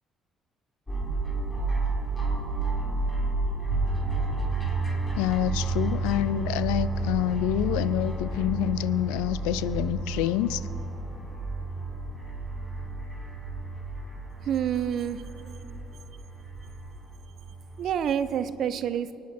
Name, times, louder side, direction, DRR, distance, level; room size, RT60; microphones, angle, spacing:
sound 1, 0.9-18.4, right 3 dB, 15° left, 3.5 m, -31 dB
voice 1, 5.2-10.6, left 13 dB, 85° left, 16 dB, 0.4 m, -27 dB
voice 2, 14.5-15.2 17.8-19.1, right 9 dB, 65° right, 13 dB, 0.6 m, -27 dB
24.5 x 9.4 x 4.3 m, 2.9 s
supercardioid pair, 65°, 0 cm